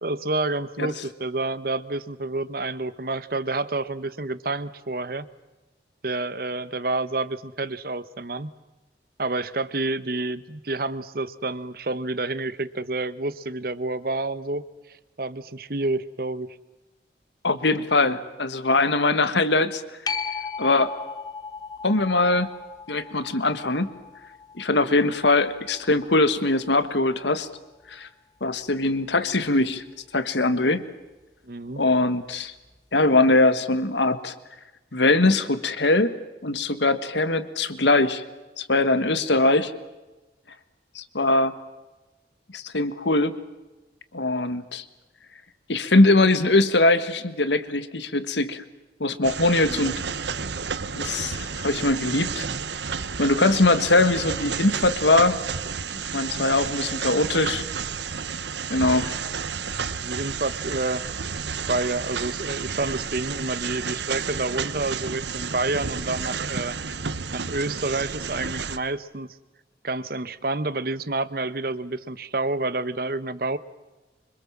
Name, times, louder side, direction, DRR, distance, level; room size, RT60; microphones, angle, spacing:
voice 1, 0.0-5.3 6.0-8.5 9.2-14.6 14.9-16.6 31.4-31.8 39.1-39.2 49.7-50.0 60.0-61.0 61.7-66.8 67.3-69.3 69.8-73.6, right 2 dB, 55° right, 15 dB, 1.1 m, -29 dB
voice 2, 17.4-20.1 20.6-20.9 21.8-22.5 22.9-23.9 24.5-27.5 27.9-28.1 28.4-29.8 30.1-30.8 31.8-32.5 32.9-34.3 34.9-36.1 36.4-38.2 38.6-39.7 40.9-41.5 42.5-43.4 44.1-44.8 45.7-48.6 49.0-49.9 50.9-52.4 53.2-55.4 55.9-57.6 58.7-59.2, left 2 dB, 80° left, 12 dB, 1.6 m, -21 dB
sound 1, 20.1-27.2 32.8-32.9, left 5 dB, 20° left, 1.0 m, -37 dB
sound 2, 49.2-68.8, right 6 dB, 75° right, 1.0 m, -31 dB
25.5 x 25.5 x 7.4 m, 1.1 s
head